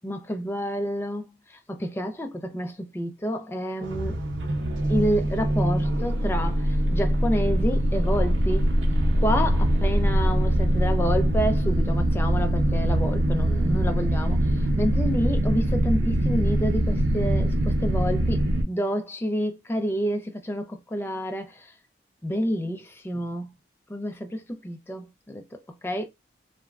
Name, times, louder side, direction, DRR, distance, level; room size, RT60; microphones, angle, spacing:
voice 1, 0.0-4.2 4.9-8.7 9.2-21.7 22.2-23.5 23.9-26.1, equal, 15° left, 0.3 m, -29 dB
sound 1, 3.8-18.6, right 1 dB, 90° right, 0.6 m, -23 dB
3.0 x 2.2 x 2.3 m
head